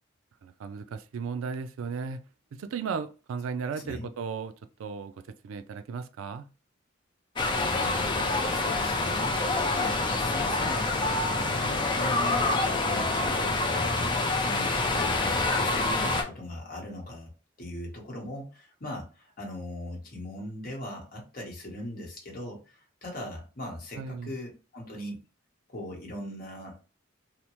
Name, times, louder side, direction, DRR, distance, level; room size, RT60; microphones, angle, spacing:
voice 1, 0.4-2.2 2.5-4.5 4.8-5.1 5.4-6.5 24.0-24.3, right 5 dB, 85° right, 0.3 m, -35 dB
sound 1, 7.4-16.2, left 2 dB, 25° left, 0.4 m, -27 dB
voice 2, 7.6-17.3 17.6-25.2 25.7-26.8, left 1 dB, 45° left, 1.0 m, -39 dB
2.8 x 2.0 x 3.0 m
head